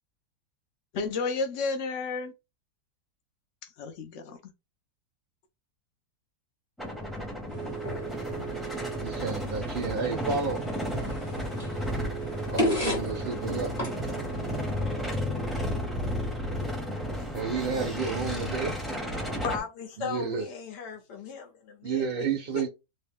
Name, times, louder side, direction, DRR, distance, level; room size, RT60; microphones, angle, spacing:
voice 1, 0.9-2.3 3.8-4.4, left 4 dB, 55° left, 1.0 m, -31 dB
sound 1, 6.8-19.6, equal, ahead, 0.7 m, -33 dB
sound 2, 7.5-15.0, right 1 dB, 25° left, 1.4 m, -35 dB
voice 2, 9.0-10.7 12.5-13.7 17.3-18.8 20.0-20.4 21.8-22.7, right 5 dB, 65° right, 0.5 m, -31 dB
voice 3, 19.4-22.0 22.5-22.7, left 6 dB, 75° left, 1.6 m, -36 dB
3.1 x 2.8 x 3.6 m
omnidirectional pair, 1.9 m